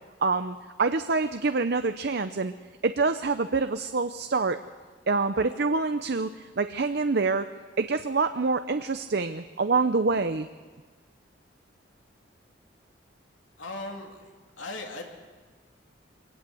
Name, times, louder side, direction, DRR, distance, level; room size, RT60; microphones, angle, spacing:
voice 1, 0.2-2.5 2.8-4.6 5.1-7.5 7.8-10.5, right 4 dB, 55° right, 9 dB, 0.7 m, -26 dB
voice 2, 13.6-15.0, left 2 dB, 85° left, 2 dB, 2.9 m, -38 dB
23.5 x 18.0 x 7.8 m, 1.4 s
head